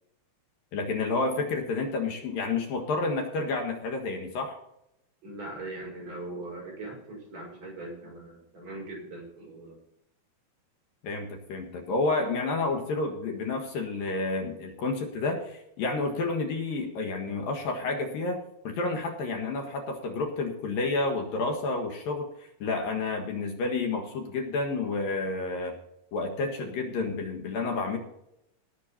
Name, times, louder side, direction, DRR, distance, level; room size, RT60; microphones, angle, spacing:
voice 1, 0.7-4.6 11.0-25.7 26.1-28.0, left 3 dB, 65° left, 3 dB, 3.2 m, -30 dB
voice 2, 5.2-9.8, right 2 dB, 40° right, -3 dB, 6.8 m, -40 dB
18.5 x 8.0 x 4.3 m, 0.78 s
omnidirectional pair, 4.5 m